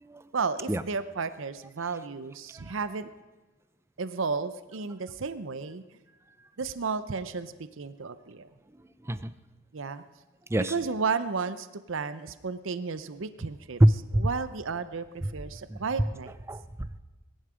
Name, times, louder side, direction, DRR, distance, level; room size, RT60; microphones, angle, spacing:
voice 1, 0.3-3.1 4.0-5.8 6.6-8.5 9.7-10.0 10.7-13.8 14.1-16.4, right 5 dB, 65° right, 13 dB, 0.6 m, -33 dB
voice 2, 13.8-14.3 15.7-15.8 16.5-17.0, right 1 dB, 10° right, 13 dB, 0.5 m, -24 dB
21.5 x 11.0 x 5.0 m, 1.2 s
head